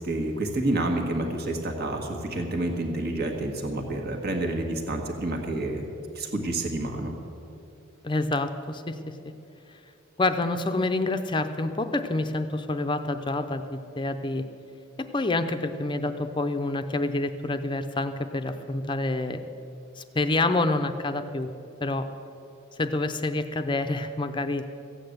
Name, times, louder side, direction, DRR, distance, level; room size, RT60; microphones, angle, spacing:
voice 1, 0.0-5.8 6.1-7.1, right 2 dB, 50° right, 3 dB, 1.6 m, -29 dB
voice 2, 8.0-9.0 10.2-14.4 15.0-19.4 20.0-21.5 21.8-22.1 22.8-24.6, left 2 dB, 25° left, 9 dB, 0.6 m, -27 dB
15.0 x 8.9 x 7.9 m, 2.6 s
head